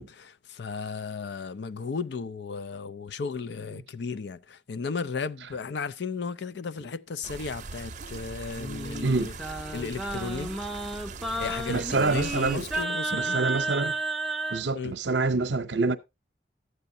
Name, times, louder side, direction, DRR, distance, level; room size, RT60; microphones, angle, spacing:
voice 1, 0.0-9.3 9.7-10.5 11.3-13.4 14.7-14.9, left 5 dB, 70° left, 0.5 m, -35 dB
sound 1, 7.2-12.9, right 4 dB, 45° right, 0.6 m, -41 dB
Singing, 8.6-14.6, right 2 dB, ahead, 0.5 m, -32 dB
voice 2, 9.0-9.3 11.7-12.7 13.1-13.9 14.5-16.0, right 3 dB, 80° right, 0.7 m, -26 dB
13.0 x 8.0 x 2.7 m
head